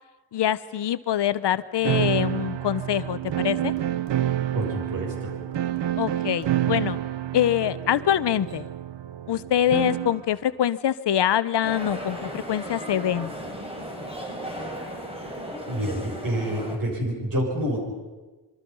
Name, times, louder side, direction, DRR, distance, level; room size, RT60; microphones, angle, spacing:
voice 1, 0.3-3.7 6.0-7.0 7.3-8.7 9.3-13.3, left 10 dB, 70° left, 14 dB, 0.9 m, -24 dB
sound 1, 1.8-10.2, right 12 dB, 85° right, 0.9 m, -28 dB
voice 2, 4.5-5.3 14.6-14.7 15.7-17.8, equal, 50° right, 0 dB, 7.2 m, -28 dB
sound 2, 11.6-16.8, equal, 15° right, 3.9 m, -35 dB
26.5 x 24.0 x 5.5 m, 1.2 s
wide cardioid pair, 135°, 42 cm